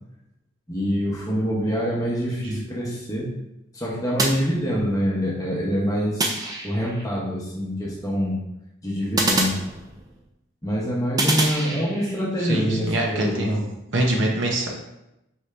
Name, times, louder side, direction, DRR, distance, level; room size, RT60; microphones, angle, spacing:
voice 1, 0.7-3.3 3.7-6.4 6.6-8.4 8.8-9.6 10.6-13.6, equal, 15° left, -5 dB, 0.9 m, -25 dB
sound 1, 4.2-5.1 6.2-7.1 9.2-10.3 11.2-12.2, right 2 dB, 20° right, 0.3 m, -26 dB
voice 2, 12.4-13.6 13.9-14.7, right 1 dB, 65° right, 0 dB, 0.7 m, -24 dB
4.5 x 2.7 x 3.3 m, 0.90 s
head